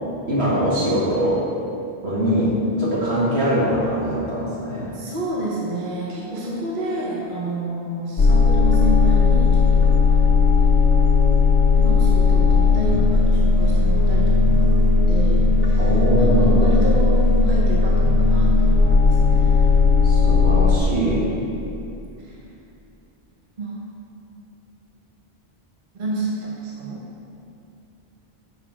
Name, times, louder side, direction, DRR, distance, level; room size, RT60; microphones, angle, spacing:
voice 1, 0.3-1.4 2.0-2.5 2.8-4.9 15.8-16.7 20.0-21.2, equal, 85° right, -8 dB, 2.2 m, -22 dB
voice 2, 4.9-10.0 10.6-10.8 11.7-14.7 15.1-19.7 20.9-21.1 22.2-22.4 23.6-23.8 25.9-27.0, right 2 dB, 50° right, -4 dB, 1.1 m, -29 dB
sound 1, 8.2-20.8, left 4 dB, 65° left, 1.1 m, -16 dB
7.2 x 5.3 x 4.8 m, 2.6 s
omnidirectional pair, 1.1 m